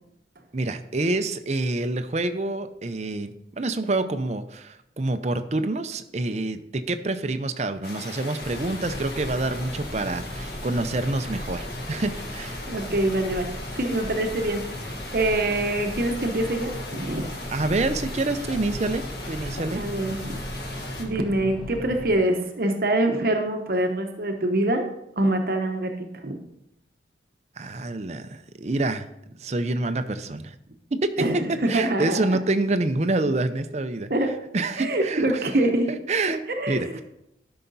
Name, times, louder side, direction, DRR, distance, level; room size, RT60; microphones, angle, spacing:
voice 1, 0.5-12.6 17.5-19.8 27.6-29.1 29.4-30.6 30.9-31.1 31.7-34.1 34.5-35.5 35.9-36.4 36.7-37.0, right 2 dB, 40° right, 9 dB, 0.6 m, -27 dB
sound 1, 7.8-21.0, left 2 dB, 60° left, 1.7 m, -39 dB
sound 2, 8.4-22.1, equal, 5° left, 1.2 m, -37 dB
voice 2, 12.7-17.3 17.7-17.9 19.7-20.4 21.0-24.9 25.2-26.4 31.2-32.4 34.1-34.4 34.8-35.9 36.5-36.9, right 1 dB, 55° right, 4 dB, 0.9 m, -25 dB
12.5 x 5.7 x 4.0 m, 0.82 s
head